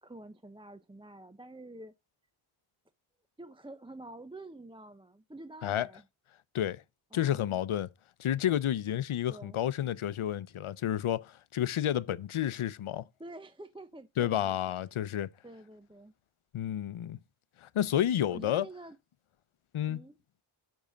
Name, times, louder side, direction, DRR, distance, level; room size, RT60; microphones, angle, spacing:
voice 1, 0.0-1.9 3.4-6.0 7.1-7.6 9.3-9.6 13.2-14.6 15.4-16.1 18.3-19.0 19.9-20.2, right 2 dB, 10° right, 0.6 m, -48 dB
voice 2, 7.1-7.9 8.2-13.0 14.2-15.3 16.5-17.2 17.6-18.7 19.7-20.0, left 11 dB, 80° left, 0.6 m, -30 dB
7.2 x 5.6 x 5.1 m
wide cardioid pair, 80°, 48 cm